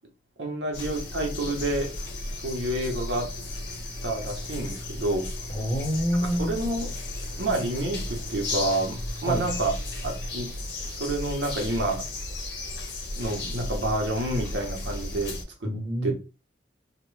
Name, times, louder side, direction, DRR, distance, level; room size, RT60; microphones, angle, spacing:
voice 1, 0.4-1.9 2.3-3.3 4.0-5.3 6.2-7.0 7.4-9.7 10.0-10.6 10.9-12.1 13.2-15.7 16.0-16.1, right 1 dB, 75° right, 0.9 m, -29 dB
sound 1, 0.7-15.4, left 2 dB, 65° left, 0.9 m, -34 dB
voice 2, 5.5-6.6 9.3-9.4 15.6-16.1, equal, 25° left, 0.8 m, -27 dB
2.9 x 2.1 x 3.1 m
head